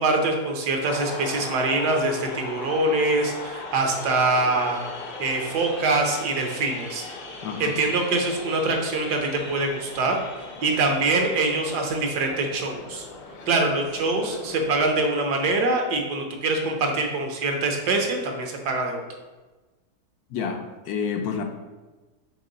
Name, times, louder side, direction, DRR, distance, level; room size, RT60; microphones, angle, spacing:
voice 1, 0.0-4.8 5.2-7.0 7.6-13.0 13.5-19.0, right 2 dB, 75° right, 2 dB, 1.5 m, -24 dB
sound 1, 0.9-15.1, left 3 dB, 50° left, 0.6 m, -38 dB
voice 2, 7.4-7.8 13.3-13.5 20.3-21.4, left 6 dB, 75° left, 5 dB, 1.0 m, -29 dB
6.5 x 3.8 x 4.0 m, 1.2 s
omnidirectional pair, 1.8 m